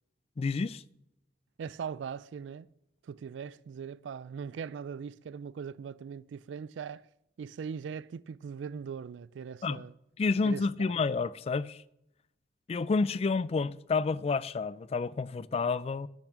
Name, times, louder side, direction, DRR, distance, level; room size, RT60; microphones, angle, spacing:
voice 1, 0.4-0.8 9.6-9.8 10.2-11.8 12.7-16.1, left 4 dB, 35° left, 0.3 m, -29 dB
voice 2, 1.6-2.7 3.0-7.1 7.4-10.0 10.4-10.9, right 6 dB, 90° right, 0.3 m, -40 dB
10.0 x 5.9 x 6.5 m
head